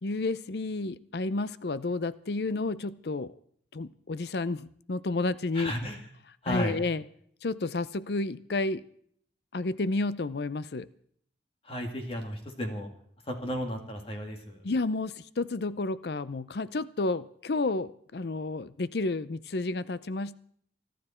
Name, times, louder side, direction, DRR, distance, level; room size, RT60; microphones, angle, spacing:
voice 1, 0.0-3.3 3.7-5.7 6.5-7.0 7.4-8.8 9.5-10.9 14.6-20.4, left 3 dB, 60° left, 16 dB, 0.6 m, -31 dB
voice 2, 5.5-6.0 6.4-6.8 11.6-12.9 13.3-14.6, equal, 30° left, 3 dB, 2.3 m, -34 dB
24.5 x 12.0 x 4.4 m, 0.63 s
head